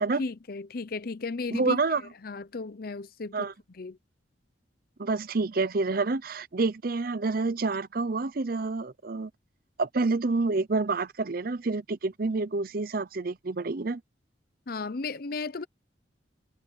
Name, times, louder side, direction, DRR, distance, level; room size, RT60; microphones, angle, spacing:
voice 1, 0.2-2.0 2.2-3.5 3.8-4.0 14.7-15.7, left 3 dB, 55° left, 0.7 m, -35 dB
voice 2, 1.5-2.0 3.3-3.5 5.0-9.3 9.8-14.0, right 3 dB, 55° right, 0.7 m, -28 dB
head